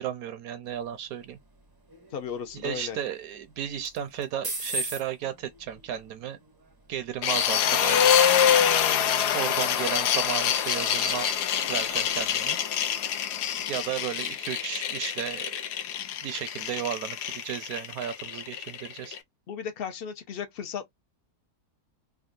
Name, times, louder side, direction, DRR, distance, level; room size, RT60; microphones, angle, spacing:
voice 1, 0.0-1.4 2.5-6.4 6.9-8.3 9.3-11.3 11.7-12.6 13.7-15.5 16.2-19.2, right 9 dB, 70° right, 0.9 m, -34 dB
sound 1, 0.6-12.5, right 2 dB, 35° right, 0.3 m, -43 dB
voice 2, 2.1-3.0 19.5-20.9, left 7 dB, 60° left, 0.6 m, -35 dB
sound 2, 7.2-19.2, left 9 dB, 85° left, 1.2 m, -25 dB
3.6 x 2.3 x 2.4 m
omnidirectional pair, 1.7 m